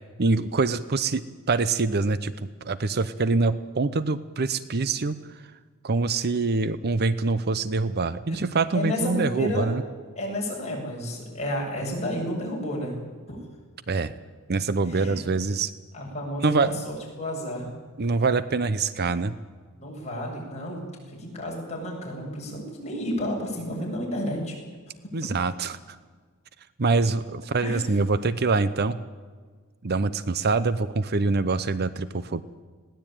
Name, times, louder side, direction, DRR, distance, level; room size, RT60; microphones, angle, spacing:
voice 1, 0.2-2.3 2.6-5.2 5.8-9.8 13.9-14.2 14.5-15.7 16.4-16.7 18.0-19.3 25.1-25.8 26.8-29.0 29.8-32.4, right 3 dB, 45° right, 14 dB, 0.7 m, -25 dB
voice 2, 8.7-9.6 10.2-12.9 13.3-13.4 14.9-15.2 15.9-17.7 19.7-20.8 21.1-24.5 25.2-25.3 27.6-27.8, equal, 30° left, -2 dB, 7.7 m, -31 dB
21.0 x 17.5 x 9.0 m, 1.5 s
head